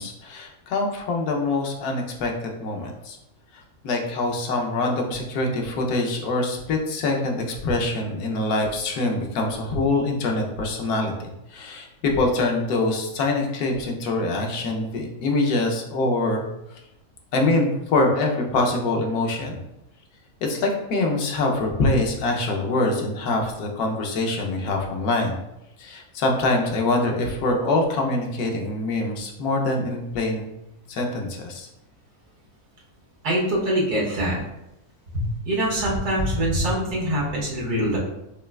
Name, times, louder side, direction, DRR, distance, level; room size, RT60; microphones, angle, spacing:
voice 1, 0.0-3.2 3.5-16.4 16.7-16.8 17.3-19.6 20.4-25.4 25.8-30.5 30.9-31.7, left 2 dB, 80° left, 1 dB, 1.2 m, -24 dB
voice 2, 33.2-34.4 35.1-38.0, right 1 dB, 85° right, -4 dB, 1.5 m, -24 dB
5.3 x 2.3 x 2.2 m, 0.87 s
omnidirectional pair, 1.6 m